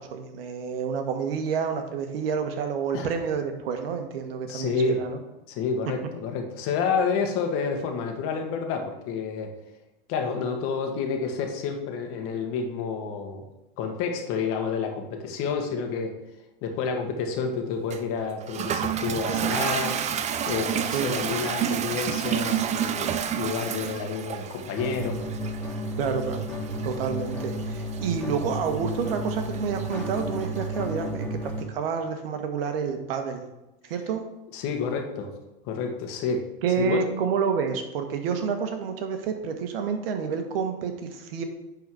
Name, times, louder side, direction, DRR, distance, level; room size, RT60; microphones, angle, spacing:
voice 1, 0.0-5.2 19.3-19.8 20.9-21.4 26.0-26.5 26.8-33.5 33.9-34.2 36.6-41.4, right 6 dB, 75° right, 6 dB, 1.4 m, -29 dB
voice 2, 4.5-5.0 5.5-9.5 10.1-13.5 13.8-16.1 16.6-20.0 20.4-25.2 34.5-35.3 35.6-36.4 36.8-37.1, left 5 dB, 50° left, 4 dB, 1.6 m, -29 dB
Toilet flush, 17.9-30.7, right 9 dB, 25° right, 0.5 m, -31 dB
sound 1, 24.8-31.6, right 1 dB, 5° left, 1.8 m, -32 dB
9.9 x 4.1 x 4.9 m, 0.95 s
hypercardioid pair, 110°, 29 cm